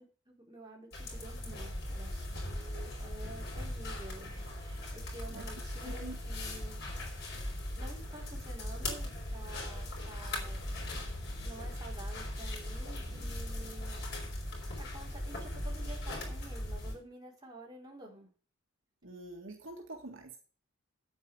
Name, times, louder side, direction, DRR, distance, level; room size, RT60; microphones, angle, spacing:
voice 1, 0.0-6.8 7.8-10.6 11.4-14.1 14.8-18.3, right 1 dB, 20° right, -2 dB, 4.2 m, -50 dB
sound 1, 0.9-17.0, left 1 dB, 50° left, 4.9 m, -39 dB
voice 2, 5.8-6.2 19.0-20.4, right 2 dB, 65° right, 3 dB, 1.8 m, -45 dB
sound 2, 8.6-13.8, left 1 dB, 45° right, 1.7 m, -57 dB
9.3 x 8.1 x 6.3 m, 0.39 s
head